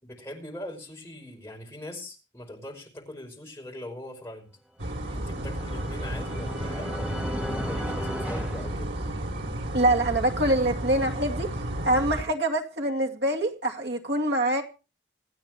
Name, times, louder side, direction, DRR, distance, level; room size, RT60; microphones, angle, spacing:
voice 1, 0.0-4.5 5.1-9.0, left 1 dB, 15° left, 5.3 m, -41 dB
sound 1, 4.8-12.2, right 1 dB, 90° right, 3.1 m, -33 dB
sound 2, 5.1-9.6, equal, 5° right, 1.5 m, -36 dB
voice 2, 9.7-11.5 11.8-14.6, right 1 dB, 65° right, 2.3 m, -25 dB
27.0 x 9.1 x 3.1 m
head